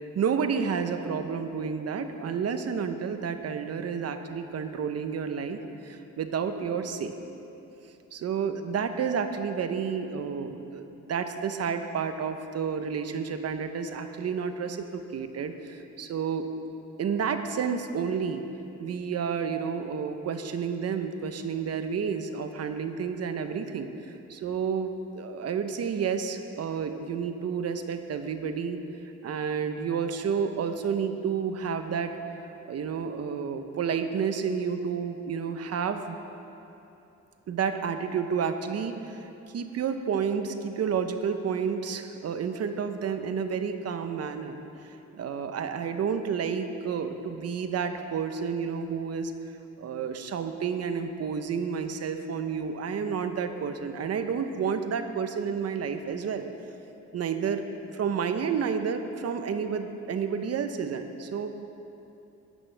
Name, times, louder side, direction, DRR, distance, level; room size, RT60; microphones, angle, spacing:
voice 1, 0.1-7.1 8.1-16.5 17.0-18.4 18.8-23.9 24.3-28.8 29.2-32.1 32.6-36.2 37.5-44.6 44.8-49.3 49.8-56.4 57.1-57.6 57.9-61.5, right 6 dB, 55° right, 8 dB, 0.9 m, -30 dB
15.5 x 10.0 x 3.4 m, 2.9 s
cardioid pair, 90°, 30 cm